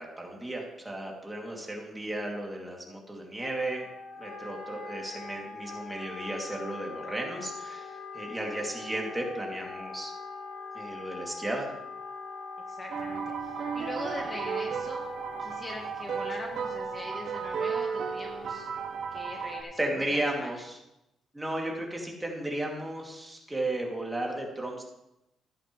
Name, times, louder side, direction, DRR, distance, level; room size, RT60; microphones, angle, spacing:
voice 1, 0.0-3.9 4.2-10.1 10.7-11.7 19.8-20.8 21.3-24.8, right 1 dB, 10° right, -1 dB, 2.7 m, -34 dB
Wind instrument woodwind instrument, 3.4-17.4, left 4 dB, 85° left, 1.7 m, -43 dB
voice 2, 12.7-15.1 15.4-18.7 19.1-19.8 20.1-20.6, left 1 dB, 25° left, 1 dB, 1.4 m, -41 dB
sound 1, 12.9-19.6, right 6 dB, 70° right, 2.0 m, -34 dB
14.0 x 11.0 x 3.2 m, 0.89 s
cardioid pair, 110°, 0 cm